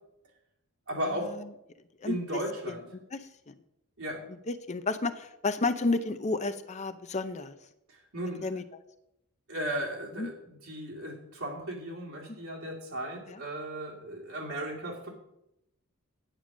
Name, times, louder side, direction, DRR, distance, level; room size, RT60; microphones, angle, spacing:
voice 1, 0.9-1.3 2.0-2.8 4.0-4.2 7.9-8.5 9.5-15.1, right 1 dB, 70° right, -3 dB, 2.5 m, -36 dB
voice 2, 2.0-2.4 2.7-2.8 3.1-3.5 4.5-7.5 8.4-8.6 10.2-10.3 13.3-13.4, left 3 dB, 30° left, 10 dB, 0.5 m, -31 dB
9.0 x 8.9 x 6.1 m, 0.84 s
head